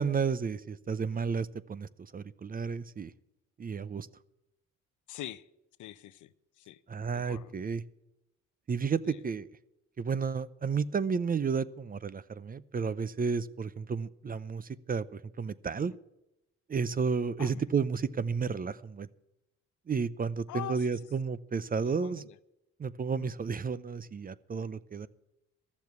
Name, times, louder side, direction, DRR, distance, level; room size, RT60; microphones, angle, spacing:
voice 1, 0.0-3.1 3.6-4.1 6.9-7.8 8.7-9.5 10.0-15.9 16.7-19.1 19.9-22.2 22.8-25.1, right 5 dB, 30° right, 18 dB, 0.6 m, -32 dB
voice 2, 5.1-5.5 5.8-6.8 7.1-7.5 9.0-9.2 15.8-16.0 17.4-17.6 20.5-20.9 21.8-22.4 23.1-23.3, left 14 dB, 75° left, 16 dB, 0.7 m, -44 dB
13.5 x 7.2 x 9.4 m, 0.88 s
cardioid pair, 90°, 30 cm